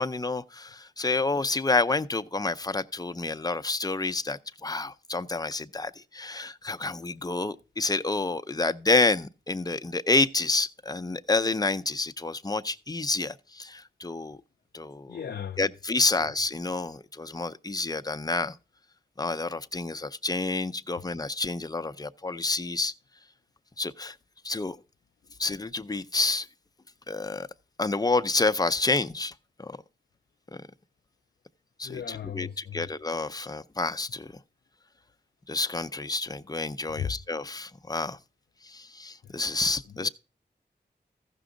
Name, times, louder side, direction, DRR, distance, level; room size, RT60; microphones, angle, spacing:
voice 1, 0.0-14.4 14.7-15.2 15.6-18.6 19.2-22.9 23.8-24.1 24.4-24.8 25.4-26.5 27.1-27.5 27.8-29.3 29.6-29.8 30.5-30.7 31.8-34.3 35.5-38.2 38.6-40.1, left 3 dB, 20° left, 0.5 m, -29 dB
voice 2, 15.1-15.6 16.2-16.3 31.8-32.9 36.9-37.2 39.2-39.4 39.9-40.1, left 8 dB, 75° left, 0.4 m, -36 dB
15.0 x 6.0 x 3.7 m
wide cardioid pair, 75°, 18 cm